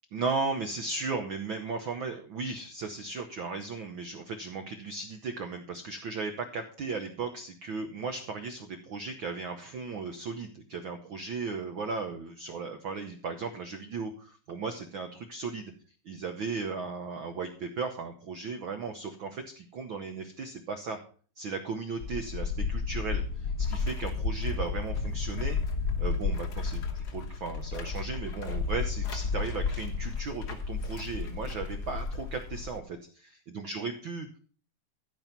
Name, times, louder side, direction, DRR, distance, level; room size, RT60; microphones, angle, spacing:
voice 1, 0.1-15.7 16.1-21.0 21.4-25.6 26.0-34.4, right 4 dB, 85° right, 6 dB, 1.0 m, -36 dB
sound 1, 22.0-32.8, left 4 dB, 55° left, 1.1 m, -32 dB
13.5 x 5.3 x 5.8 m, 0.43 s
omnidirectional pair, 3.6 m